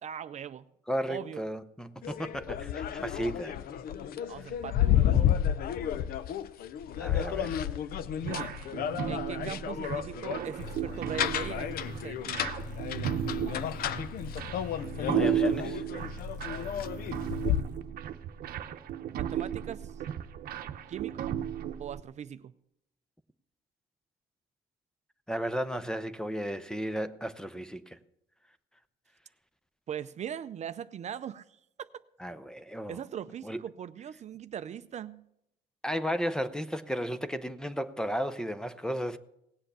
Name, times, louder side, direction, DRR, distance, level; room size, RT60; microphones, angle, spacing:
voice 1, 0.0-0.7 1.1-1.4 4.3-5.3 7.1-7.3 9.1-12.4 19.1-20.0 20.9-21.4 21.8-22.5 29.9-32.0 32.9-35.2, right 9 dB, 45° right, 0.5 m, -40 dB
voice 2, 0.9-3.6 7.0-7.6 15.1-15.8 25.3-28.0 32.2-33.0 33.4-33.6 35.8-39.2, equal, 5° left, 0.7 m, -34 dB
sound 1, 2.0-17.6, left 10 dB, 60° left, 0.6 m, -31 dB
sound 2, 8.2-22.0, right 10 dB, 60° right, 0.9 m, -35 dB
sound 3, 10.6-17.8, left 3 dB, 45° left, 1.4 m, -43 dB
18.0 x 7.7 x 6.8 m
cardioid pair, 110°, 17 cm